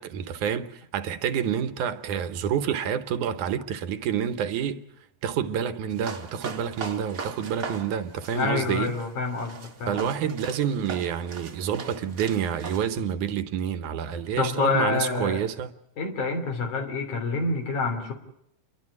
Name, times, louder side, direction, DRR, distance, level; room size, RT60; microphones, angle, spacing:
voice 1, 0.0-4.8 5.2-9.0 9.9-15.7, right 8 dB, 75° right, 2.4 m, -28 dB
sound 1, 5.9-12.8, right 5 dB, 40° right, 1.2 m, -39 dB
voice 2, 8.3-10.1 14.4-15.4 16.0-18.1, left 4 dB, 70° left, 4.7 m, -27 dB
29.5 x 11.5 x 9.7 m
omnidirectional pair, 3.6 m